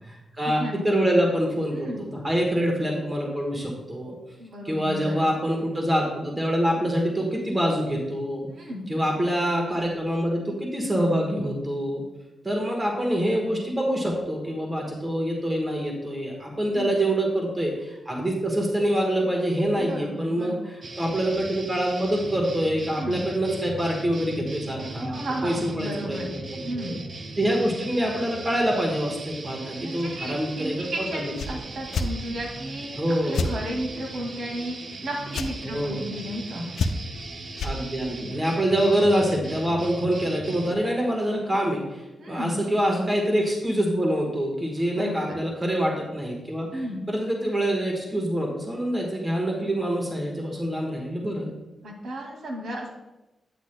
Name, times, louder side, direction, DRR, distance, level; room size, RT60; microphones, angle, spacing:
voice 1, 0.1-4.1 4.6-8.5 8.9-12.0 12.4-26.9 27.4-31.3 33.0-33.6 35.6-36.1 37.6-51.5, equal, 15° right, 0 dB, 1.3 m, -26 dB
voice 2, 1.7-2.1 4.4-5.2 8.5-8.9 16.7-17.0 19.8-20.6 23.0-23.2 25.0-26.3 26.6-26.9 29.8-33.0 33.2-36.7 42.2-42.6 44.9-45.4 46.7-47.0 51.8-52.9, right 1 dB, 75° right, 0 dB, 2.0 m, -34 dB
sound 1, 20.8-40.8, right 2 dB, 40° right, 0.6 m, -39 dB
sound 2, 31.3-31.5 31.9-32.1 33.3-33.5 35.3-35.5 36.8-37.2 37.6-37.8, left 3 dB, 90° left, 0.5 m, -26 dB
9.1 x 8.2 x 2.2 m, 1.0 s
wide cardioid pair, 145°, 0 cm